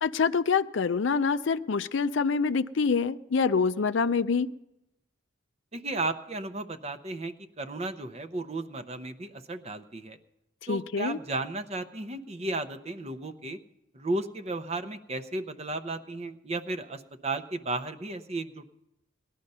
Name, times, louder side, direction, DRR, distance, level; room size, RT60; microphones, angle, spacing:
voice 1, 0.0-4.5 10.6-11.2, left 5 dB, 60° left, 13 dB, 0.4 m, -26 dB
voice 2, 5.7-10.2 10.7-13.6 13.9-18.7, right 2 dB, 30° right, 9 dB, 0.7 m, -34 dB
19.0 x 11.5 x 5.5 m, 0.90 s
head